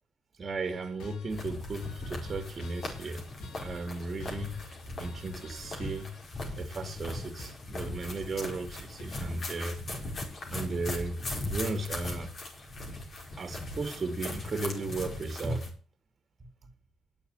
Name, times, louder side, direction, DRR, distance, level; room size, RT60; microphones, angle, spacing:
voice 1, 0.4-3.2 3.6-6.2 6.6-9.8 10.5-12.3 13.4-15.7, right 2 dB, 40° right, 2.4 m, -35 dB
sound 1, 0.7-9.0, left 2 dB, 85° left, 2.7 m, -51 dB
sound 2, 1.3-15.7, left 2 dB, 45° left, 5.1 m, -39 dB
11.0 x 7.3 x 8.1 m
cardioid pair, 90°, 0 cm